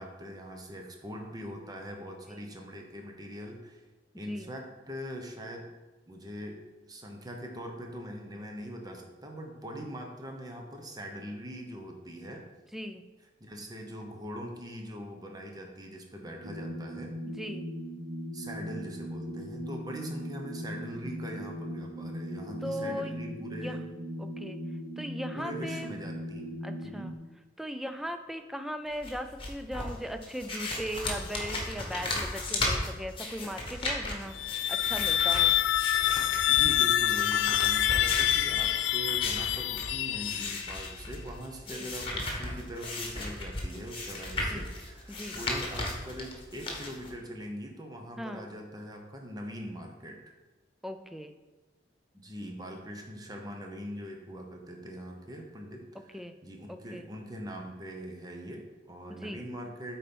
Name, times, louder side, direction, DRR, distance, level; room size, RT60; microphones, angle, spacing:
voice 1, 0.0-3.8 4.1-5.7 6.1-12.4 13.4-17.1 18.3-23.8 25.3-26.6 26.8-27.1 36.5-50.2 52.1-60.0, equal, 20° right, 2 dB, 1.0 m, -42 dB
sound 1, 16.4-27.1, equal, 85° right, 0.9 m, -39 dB
voice 2, 22.6-23.2 23.6-23.8 24.2-24.6 25.0-26.0 26.6-27.1 27.6-34.4 34.7-35.6 41.7-41.9 44.4-44.6 45.1-45.4 48.2-48.5 50.8-51.3 56.1-56.3 56.7-57.1 59.1-59.4, equal, ahead, 7 dB, 0.4 m, -38 dB
sound 2, 28.9-47.1, left 2 dB, 30° left, 1.4 m, -36 dB
sound 3, 34.3-40.9, left 12 dB, 75° left, 0.3 m, -26 dB
8.3 x 4.3 x 5.4 m, 1.2 s
head